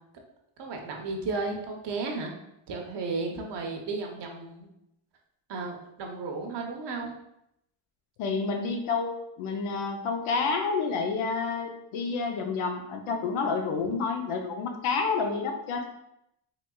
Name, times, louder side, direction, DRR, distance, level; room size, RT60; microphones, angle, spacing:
voice 1, 0.6-2.3 2.7-4.7 5.5-7.2, right 3 dB, 60° right, 2 dB, 0.9 m, -34 dB
voice 2, 8.2-15.9, left 4 dB, 90° left, 4 dB, 0.7 m, -29 dB
4.0 x 3.1 x 2.3 m, 0.81 s
cardioid pair, 95°, 48 cm